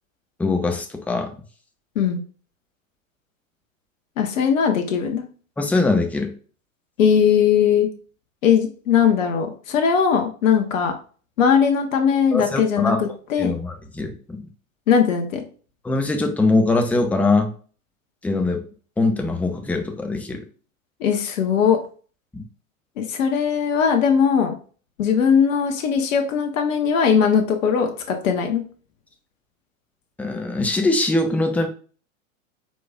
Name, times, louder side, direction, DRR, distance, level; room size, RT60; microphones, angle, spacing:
voice 1, 0.4-1.3 5.6-6.3 12.3-13.1 13.4-14.4 15.8-17.5 18.2-18.6 19.0-20.5 22.3-22.4 30.2-31.7, left 2 dB, 5° left, 4 dB, 0.6 m, -22 dB
voice 2, 4.2-5.2 7.0-7.9 8.4-10.9 11.4-13.6 14.9-15.4 21.0-21.8 23.0-24.5 25.0-28.6, left 7 dB, 70° left, 4 dB, 1.0 m, -19 dB
4.6 x 4.3 x 2.3 m, 0.40 s
hypercardioid pair, 100°, 40 cm